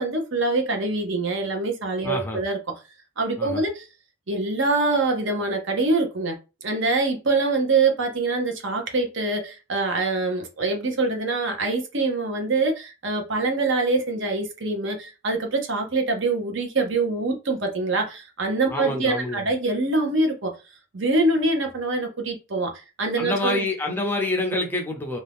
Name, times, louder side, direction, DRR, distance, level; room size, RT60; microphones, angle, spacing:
voice 1, 0.0-2.6 3.2-3.9 4.3-6.4 6.6-20.5 20.9-22.7 23.0-23.6, right 3 dB, 55° right, 0.8 m, -24 dB
voice 2, 2.0-2.4 3.4-3.6 18.7-19.5 23.2-25.2, left 1 dB, 10° left, 0.5 m, -27 dB
2.7 x 2.3 x 3.4 m
head